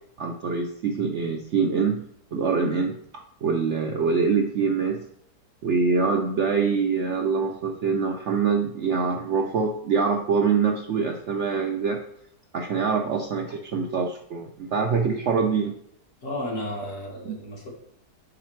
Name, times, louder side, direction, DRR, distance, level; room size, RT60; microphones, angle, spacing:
voice 1, 0.2-2.0 2.3-5.0 5.6-12.0 12.5-15.7, right 5 dB, 65° right, 2 dB, 0.7 m, -24 dB
voice 2, 16.2-17.7, left 1 dB, 50° left, -3 dB, 1.9 m, -33 dB
6.6 x 4.8 x 3.2 m, 0.71 s
omnidirectional pair, 1.7 m